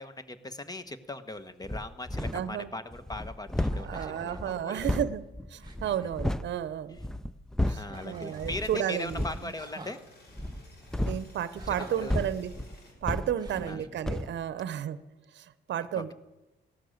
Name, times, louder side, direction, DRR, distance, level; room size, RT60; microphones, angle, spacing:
voice 1, 0.0-4.9 7.6-10.0 11.7-12.2 13.5-13.9 15.9-16.1, left 2 dB, 20° left, 12 dB, 1.2 m, -39 dB
sound 1, 1.6-2.6 2.9-6.5 6.9-8.0 8.4-8.7 9.1-9.5 10.3-13.8 14.0-14.4, left 1 dB, 5° left, 0.4 m, -33 dB
sound 2, 2.2-2.5 3.7-4.5 5.2-5.3 5.6-6.1 7.7-8.5 9.6-10.0 11.6-12.2 13.4-14.0, right 3 dB, 20° right, 1.9 m, -47 dB
voice 2, 2.3-2.7 3.7-7.0 7.7-9.2 11.0-12.5 13.0-15.0 15.3-16.1, right 10 dB, 65° right, 15 dB, 0.8 m, -32 dB
sound 3, 7.9-12.9, left 1 dB, 55° left, 4.8 m, -56 dB
17.0 x 12.5 x 6.5 m, 1.0 s
cardioid pair, 105°, 20 cm